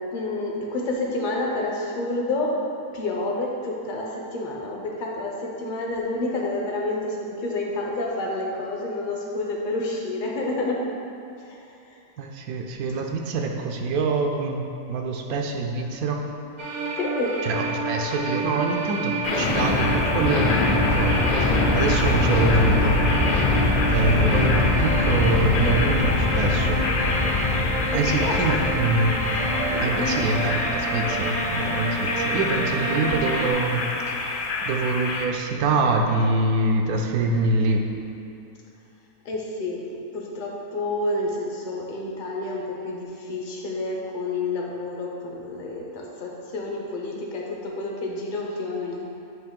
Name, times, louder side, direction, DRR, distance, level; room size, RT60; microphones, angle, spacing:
voice 1, 0.1-2.6 2.9-10.8 11.4-11.6 17.0-17.4 27.9-28.6 29.7-30.2 39.2-39.8 40.1-49.1, left 2 dB, 40° left, -2 dB, 0.9 m, -29 dB
voice 2, 12.2-16.2 17.4-23.0 23.9-26.8 27.9-29.1 29.8-37.8, right 3 dB, 80° right, 2 dB, 1.1 m, -25 dB
sound 1, 16.6-33.5, right 2 dB, 40° right, 0.6 m, -29 dB
sound 2, 19.2-35.2, left 3 dB, 65° left, 0.5 m, -24 dB
7.8 x 3.0 x 5.2 m, 2.6 s
omnidirectional pair, 1.6 m